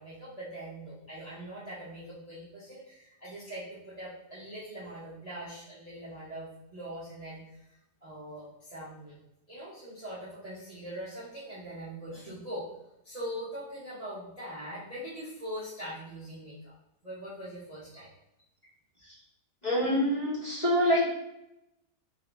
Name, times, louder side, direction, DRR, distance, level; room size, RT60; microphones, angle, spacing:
voice 1, 0.0-7.5 8.0-9.2 9.5-12.7 13.0-16.7 17.0-18.1, equal, 30° right, -10 dB, 0.8 m, -42 dB
voice 2, 19.6-21.1, equal, 25° left, -9 dB, 1.3 m, -26 dB
3.9 x 2.7 x 3.4 m, 0.86 s
omnidirectional pair, 1.8 m